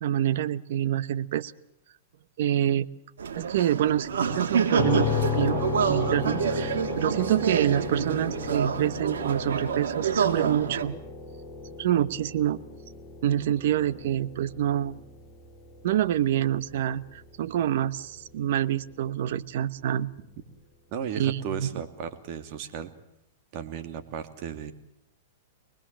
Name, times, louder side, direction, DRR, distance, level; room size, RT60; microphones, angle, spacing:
voice 1, 0.0-1.5 2.4-2.9 3.3-11.0 11.8-12.6 13.2-15.0 15.8-20.1 21.2-21.7, right 11 dB, 65° right, 15 dB, 1.1 m, -27 dB
sound 1, 3.2-10.8, right 6 dB, 85° right, 3.5 m, -28 dB
sound 2, 4.7-18.5, left 6 dB, 20° left, 2.3 m, -35 dB
voice 2, 20.9-22.9 23.5-24.7, right 7 dB, 45° right, 7 dB, 2.7 m, -35 dB
24.5 x 20.5 x 7.6 m, 0.80 s
hypercardioid pair, 135°, 0 cm